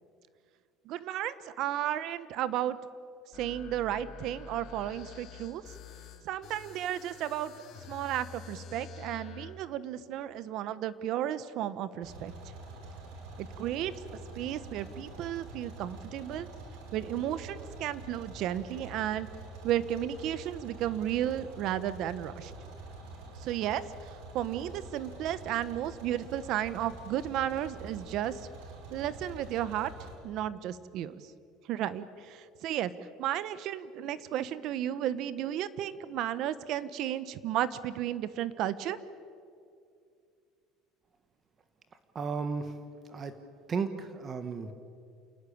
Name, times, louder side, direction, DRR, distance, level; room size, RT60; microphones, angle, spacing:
voice 1, 0.8-2.8 3.3-5.6 6.2-7.5 7.9-12.3 13.4-13.9 14.3-16.5 16.9-19.3 19.6-22.5 23.4-28.4 28.9-29.9 30.2-31.3 31.7-32.9 33.2-39.0, right 11 dB, 55° right, 15 dB, 1.1 m, -33 dB
sound 1, 3.3-9.5, left 5 dB, 45° left, 3.7 m, -48 dB
sound 2, 12.0-30.2, right 2 dB, 75° right, 6.2 m, -46 dB
voice 2, 42.1-42.8 43.1-43.3 43.7-44.7, right 5 dB, 25° right, 10 dB, 1.5 m, -34 dB
28.0 x 19.0 x 8.7 m, 2.4 s
cardioid pair, 150°, 0 cm